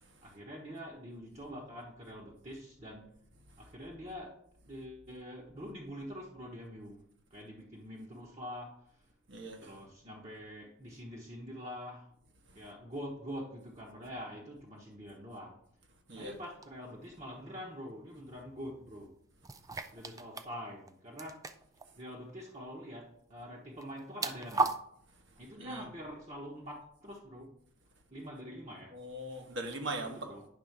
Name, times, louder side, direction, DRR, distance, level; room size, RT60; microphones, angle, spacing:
voice 1, 0.2-3.1 3.6-4.4 4.6-7.0 7.3-9.1 9.5-12.1 12.5-15.6 16.1-19.1 19.9-21.5 22.0-24.7 25.4-27.5 28.1-29.0 30.0-30.4, equal, 35° right, 1.1 m, -45 dB
voice 2, 9.3-9.8 16.1-16.3 25.6-25.8 28.9-30.3, right 1 dB, 65° right, 1.3 m, -40 dB
sound 1, 16.6-16.7 19.4-20.5 20.8-20.9 21.2-21.9 23.8-24.8, right 3 dB, 15° right, 0.3 m, -34 dB
9.4 x 3.8 x 5.9 m
head